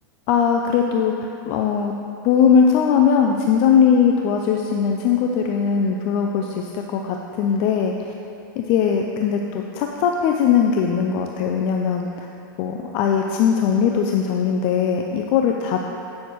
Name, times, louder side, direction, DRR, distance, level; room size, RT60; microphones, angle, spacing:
voice 1, 0.3-1.9 2.2-8.1 8.6-12.3 12.6-15.8, left 7 dB, 50° left, 2 dB, 0.4 m, -20 dB
8.3 x 6.3 x 3.0 m, 2.7 s
supercardioid pair, 125°, 12 cm